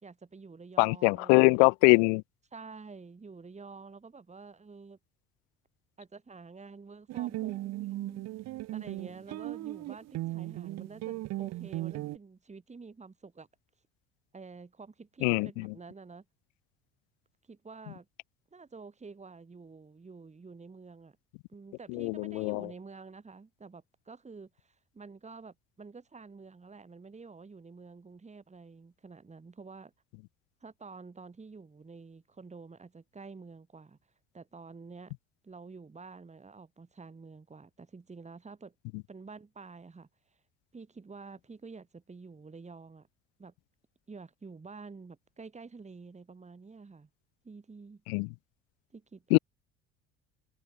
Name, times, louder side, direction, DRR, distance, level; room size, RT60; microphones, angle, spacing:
voice 1, 0.0-1.7 2.5-5.0 6.0-13.5 14.3-16.2 17.5-18.1 18.5-21.2 21.5-29.9 30.6-34.0 34.3-35.1 35.4-38.7 39.1-40.1 40.7-43.1 43.4-43.5 44.1-47.1 47.4-48.0 48.9-49.4, right 4 dB, 20° right, 3.0 m, -49 dB
voice 2, 0.8-2.2 15.2-15.7 21.9-22.7 48.1-48.3 49.3-49.4, left 40 dB or more, 75° left, 0.6 m, -23 dB
sound 1, 7.1-12.2, right 17 dB, 55° right, 0.8 m, -37 dB
hypercardioid pair, 65°, 31 cm